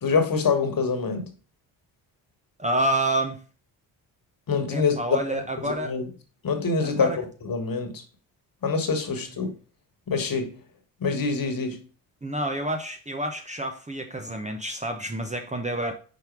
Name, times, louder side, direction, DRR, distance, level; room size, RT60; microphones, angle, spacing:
voice 1, 0.0-1.2 4.5-5.2 5.6-6.1 6.4-7.1 7.4-8.0 8.6-9.5 10.1-10.5 11.0-11.8, left 5 dB, 45° left, 1.6 m, -25 dB
voice 2, 2.6-3.4 4.7-6.0 6.8-7.2 12.2-15.9, right 1 dB, 15° right, 0.8 m, -28 dB
5.2 x 4.5 x 4.7 m
hypercardioid pair, 50°, 47 cm